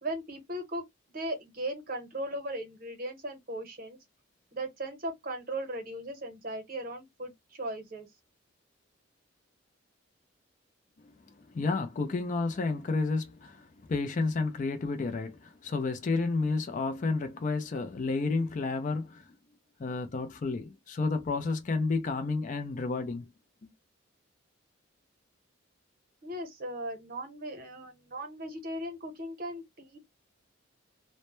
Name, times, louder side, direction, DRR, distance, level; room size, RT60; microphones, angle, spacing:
voice 1, 0.0-0.8 1.1-4.0 4.5-8.1 26.2-30.0, right 1 dB, 50° right, 0.8 m, -37 dB
voice 2, 11.4-19.3 19.8-23.3 23.6-23.7, left 3 dB, 40° left, 0.4 m, -31 dB
2.1 x 2.1 x 2.9 m
head